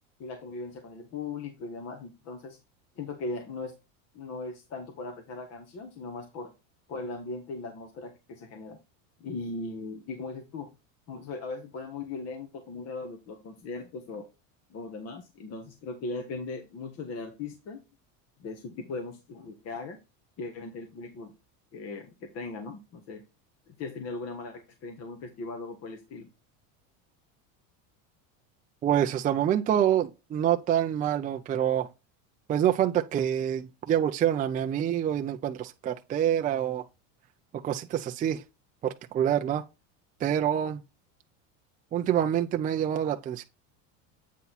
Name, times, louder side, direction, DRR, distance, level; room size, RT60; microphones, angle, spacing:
voice 1, 0.2-2.6 3.0-3.8 4.1-6.5 6.9-8.8 9.2-10.7 11.1-14.3 14.7-17.8 18.4-20.0 20.4-21.3 21.7-23.2 23.7-26.3, left 3 dB, 40° left, 1.4 m, -38 dB
voice 2, 28.8-31.9 32.5-36.8 37.6-38.4 38.8-39.6 40.2-40.8 41.9-43.4, right 10 dB, 20° right, 0.5 m, -26 dB
8.3 x 4.1 x 4.1 m
supercardioid pair, 135°, 39 cm